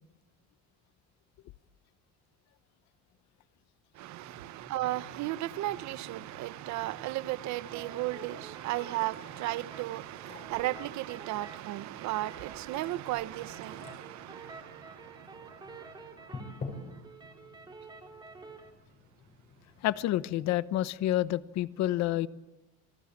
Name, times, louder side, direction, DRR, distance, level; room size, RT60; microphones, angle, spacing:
voice 1, 3.9-16.6, right 16 dB, 75° right, 1.0 m, -35 dB
sound 1, 4.2-20.5, left 3 dB, 30° left, 5.9 m, -51 dB
sound 2, 7.7-18.7, right 3 dB, 15° right, 4.2 m, -51 dB
voice 2, 19.8-22.3, left 14 dB, 65° left, 1.0 m, -29 dB
29.0 x 22.0 x 8.8 m
cardioid pair, 170°, 29 cm